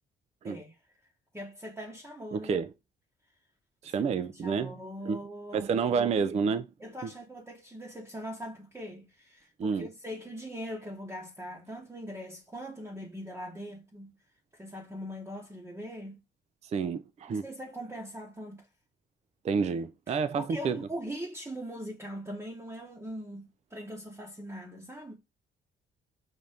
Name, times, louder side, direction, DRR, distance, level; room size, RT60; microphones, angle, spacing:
voice 1, 0.4-0.8 1.3-2.5 3.8-6.0 6.8-14.1 14.5-16.2 17.3-18.7 20.1-25.1, equal, 10° right, 0.9 m, -41 dB
voice 2, 2.3-2.7 3.8-4.8 5.0-5.2 5.5-6.7 7.0-7.1 9.6-9.9 16.6-17.4 19.4-20.8, right 5 dB, 35° right, 0.3 m, -29 dB
5.5 x 2.6 x 3.3 m
cardioid pair, 90°, 20 cm